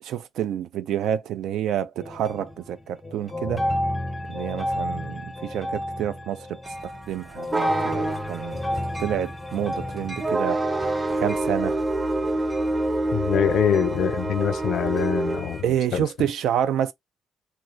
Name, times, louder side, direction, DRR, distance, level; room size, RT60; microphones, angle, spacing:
voice 1, 0.0-3.7 4.3-8.6 9.0-10.6 11.2-11.8 15.6-16.9, right 10 dB, 80° right, 0.4 m, -28 dB
sound 1, 2.0-2.8 3.0-11.5, left 1 dB, 20° left, 0.5 m, -31 dB
sound 2, 6.7-15.6, right 2 dB, 20° right, 0.7 m, -27 dB
voice 2, 13.1-15.6 15.9-16.0, left 9 dB, 75° left, 0.4 m, -24 dB
2.9 x 2.3 x 2.5 m
cardioid pair, 90°, 0 cm